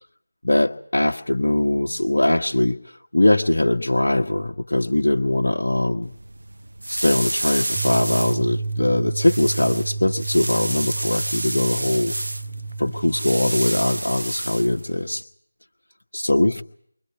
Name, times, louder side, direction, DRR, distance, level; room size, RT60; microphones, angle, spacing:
voice 1, 0.4-2.8 3.1-6.1 6.9-12.1 12.8-15.2 16.1-16.6, left 1 dB, 65° left, 1 dB, 1.5 m, -21 dB
Straw Broom, 6.0-15.2, right 1 dB, 70° right, 0.9 m, -30 dB
sound 1, 7.8-14.0, right 3 dB, 20° right, 6.5 m, -31 dB
29.5 x 24.5 x 4.8 m, 0.66 s
figure-of-eight pair, 165°, 0 cm